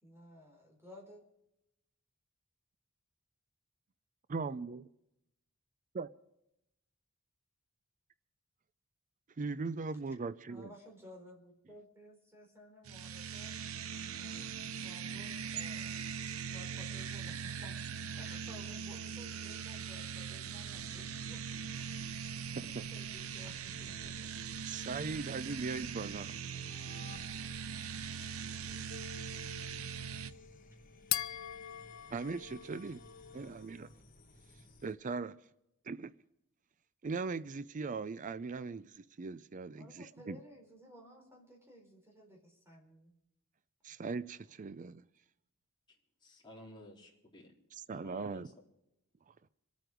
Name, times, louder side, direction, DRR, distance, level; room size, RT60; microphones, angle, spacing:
voice 1, 0.0-1.2 10.5-13.6 14.2-16.0 16.5-21.9 22.4-24.3 28.9-29.0 39.8-43.1, equal, 10° right, 4.3 m, -56 dB
voice 2, 4.3-4.9 5.9-6.1 9.4-10.7 22.7-22.9 24.7-26.3 32.1-33.0 33.3-33.9 34.8-35.3 35.9-36.1 37.0-40.4 43.8-45.0 47.9-48.5, right 4 dB, 35° right, 0.4 m, -39 dB
sound 1, 12.9-30.3, right 7 dB, 70° right, 0.8 m, -41 dB
sound 2, 20.6-35.0, left 2 dB, 40° left, 1.6 m, -58 dB
sound 3, 28.9-33.7, left 12 dB, 65° left, 0.6 m, -43 dB
voice 3, 46.2-47.5 47.9-48.5, left 1 dB, 20° left, 3.9 m, -54 dB
27.0 x 9.2 x 5.1 m
head